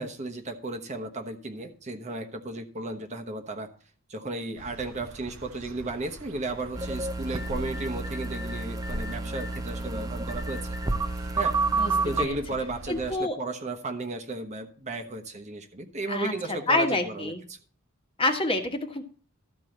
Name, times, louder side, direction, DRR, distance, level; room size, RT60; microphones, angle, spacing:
voice 1, 0.0-3.7 4.1-10.8 11.4-11.6 12.0-17.6, right 2 dB, 35° right, 5 dB, 1.1 m, -34 dB
sound 1, 4.6-13.2, right 2 dB, 80° right, 0.9 m, -43 dB
sound 2, 6.7-12.3, right 3 dB, 15° right, 0.7 m, -30 dB
voice 2, 12.9-13.4 16.1-16.3 16.7-17.4 18.2-19.0, left 2 dB, 25° left, 4 dB, 1.3 m, -27 dB
13.5 x 4.6 x 7.8 m, 0.42 s
head